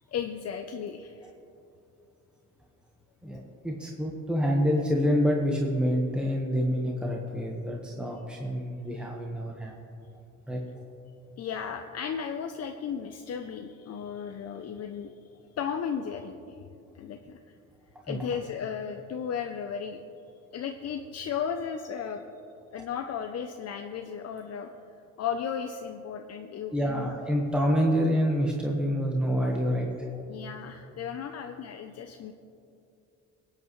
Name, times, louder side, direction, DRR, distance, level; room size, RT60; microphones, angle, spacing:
voice 1, 0.1-1.3 11.4-15.1 15.6-16.3 16.9-17.4 18.0-20.0 20.5-22.3 22.7-24.7 25.2-27.1 30.3-32.3, left 7 dB, 55° left, 5 dB, 0.6 m, -35 dB
voice 2, 3.2-9.8 10.5-10.6 18.1-18.2 26.7-29.9, equal, 5° right, -1 dB, 1.3 m, -27 dB
21.0 x 8.7 x 3.2 m, 2.7 s
cardioid pair, 90°, 30 cm